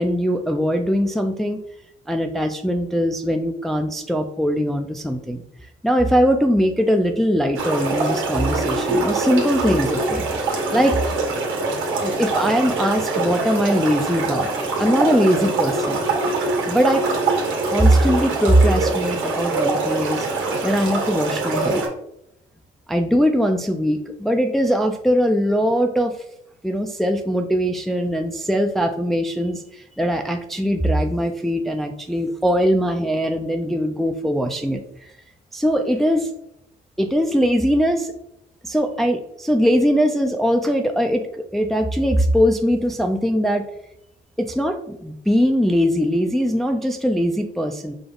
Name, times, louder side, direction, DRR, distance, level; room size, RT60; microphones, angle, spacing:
voice 1, 0.0-1.6 2.1-5.4 5.8-11.0 12.0-14.5 14.8-16.0 16.7-17.1 17.7-20.3 20.6-21.8 22.9-26.2 26.6-34.8 35.5-36.3 37.0-38.1 38.6-43.7 44.4-47.9, equal, ahead, 4 dB, 0.4 m, -21 dB
sound 1, 7.5-21.9, right 3 dB, 80° right, 1.4 m, -24 dB
5.3 x 2.3 x 3.8 m, 0.79 s
cardioid pair, 90°, 20 cm